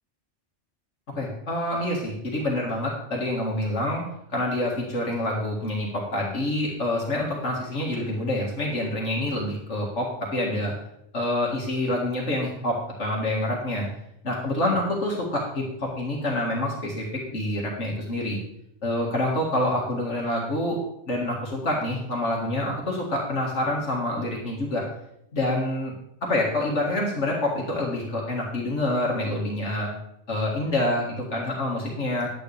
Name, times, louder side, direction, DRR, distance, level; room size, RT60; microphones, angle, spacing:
voice 1, 1.2-4.0 4.3-10.7 11.1-13.9 14.2-18.4 18.8-20.8 21.1-24.8 25.3-25.9 26.2-29.9 30.3-32.3, left 1 dB, 70° left, -2 dB, 2.2 m, -27 dB
10.5 x 9.5 x 3.4 m, 0.78 s
omnidirectional pair, 1.3 m